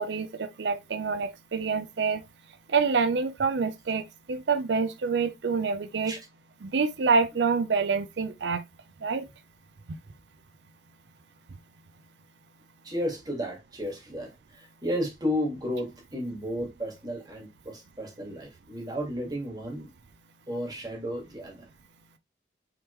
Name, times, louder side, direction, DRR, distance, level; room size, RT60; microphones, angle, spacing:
voice 1, 0.0-2.2 2.7-6.1 6.6-8.6 9.0-9.2, right 5 dB, 80° right, 0.5 m, -27 dB
voice 2, 12.8-19.9 20.5-21.7, equal, 20° right, 1.7 m, -33 dB
4.9 x 3.6 x 3.0 m
head